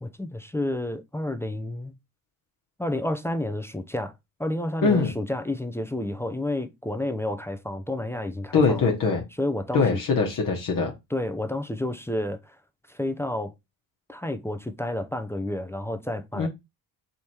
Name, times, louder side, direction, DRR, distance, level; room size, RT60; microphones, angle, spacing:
voice 1, 0.0-1.9 2.8-4.1 4.4-8.8 9.4-9.8 11.1-12.6 12.9-13.5 14.1-16.5, left 1 dB, 5° left, 0.6 m, -30 dB
voice 2, 4.8-5.1 8.5-9.2 9.7-10.9 16.3-16.5, left 4 dB, 55° left, 1.2 m, -22 dB
3.5 x 3.1 x 4.2 m
supercardioid pair, 70°, 40 cm